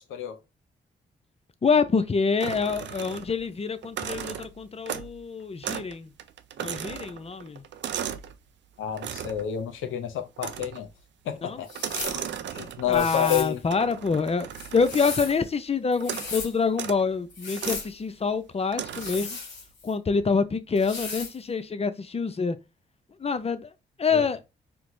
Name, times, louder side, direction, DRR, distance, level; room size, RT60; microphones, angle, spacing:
voice 1, 1.6-6.1 6.6-7.6 11.4-11.6 12.9-19.4 19.8-22.6 23.2-23.7 24.0-24.4, left 5 dB, 30° left, 0.5 m, -26 dB
sound 1, 2.4-3.5 3.8-5.2 5.6-5.9 6.2-8.3 9.0-9.5 10.4-10.9 11.7-13.0 13.7-15.4 16.0-16.4 16.7-17.0 17.6-17.9 18.7-19.3, right 9 dB, 65° right, 0.4 m, -36 dB
voice 2, 8.8-10.9 11.2-11.7 12.0-12.2 12.5-13.6 24.1-24.2, left 9 dB, 80° left, 0.6 m, -29 dB
sound 2, 11.7-12.2 12.9-13.5 14.5-15.4 15.9-16.5 17.3-17.9 18.9-19.9 20.8-21.4, left 4 dB, 65° left, 1.1 m, -36 dB
4.4 x 2.1 x 2.6 m
supercardioid pair, 45°, 20 cm